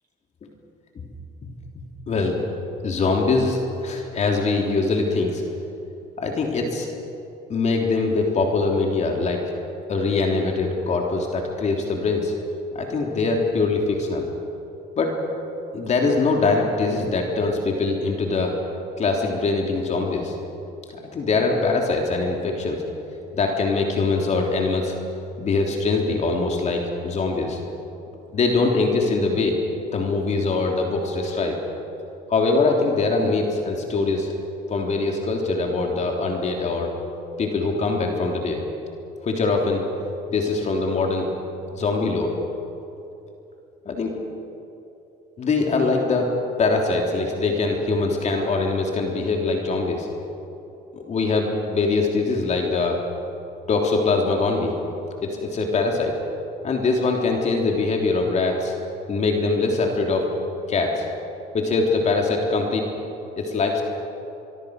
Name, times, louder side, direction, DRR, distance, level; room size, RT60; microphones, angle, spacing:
voice 1, 2.1-2.4 2.8-5.4 6.2-6.9 7.5-9.4 9.9-12.3 12.7-14.3 15.0-15.2 15.7-18.5 19.0-20.3 20.9-22.8 23.3-24.9 25.4-27.6 28.3-29.5 29.9-31.6 32.3-34.3 34.7-36.9 37.4-38.6 39.2-39.8 40.3-41.3 41.7-42.3 43.8-44.2 45.4-46.3 46.6-50.1 50.9-53.0 53.7-54.7 55.2-56.1 56.6-58.7 59.1-60.3 60.7-61.0 61.5-62.8 63.4-63.8, left 3 dB, 45° left, 1 dB, 3.5 m, -23 dB
24.0 x 23.5 x 6.5 m, 2.9 s
cardioid pair, 110°, 17 cm